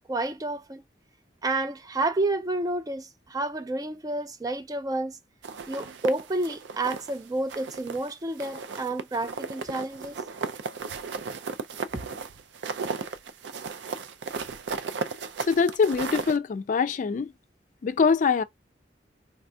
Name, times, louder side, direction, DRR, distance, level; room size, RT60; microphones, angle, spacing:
voice 1, 0.1-0.8 1.4-5.2 5.7-10.1 11.9-12.1, right 2 dB, 20° right, 0.4 m, -30 dB
sound 1, 5.4-7.2 7.5-8.1 8.4-16.4, right 5 dB, 90° right, 0.4 m, -35 dB
voice 2, 15.5-17.3 17.8-18.4, left 5 dB, 45° left, 0.3 m, -23 dB
4.1 x 2.3 x 2.6 m
head